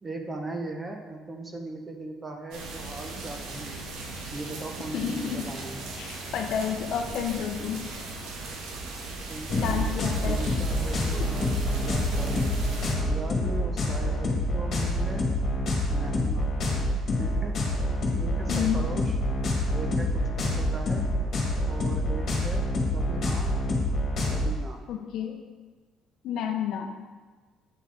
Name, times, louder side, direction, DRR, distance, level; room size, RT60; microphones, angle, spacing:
voice 1, 0.0-3.8 4.3-5.8 9.3-12.5 13.1-15.3 15.9-16.5 17.2-17.6 18.1-19.2 19.7-21.0 21.7-22.7 22.9-23.5 24.3-24.8, right 2 dB, 15° right, 3 dB, 0.7 m, -38 dB
sound 1, 2.5-12.9, right 3 dB, 85° right, 1.2 m, -38 dB
voice 2, 4.9-5.5 6.0-7.8 9.6-10.4 11.2-11.3 18.5-18.8 24.9-25.4 26.2-26.9, left 8 dB, 55° left, 5 dB, 0.7 m, -30 dB
sound 2, 9.5-24.5, left 1 dB, 40° left, 1.6 m, -27 dB
Wind instrument woodwind instrument, 11.0-13.9, right 2 dB, 40° right, 1.3 m, -45 dB
8.4 x 5.5 x 3.8 m, 1.4 s
cardioid pair, 175°, 0 cm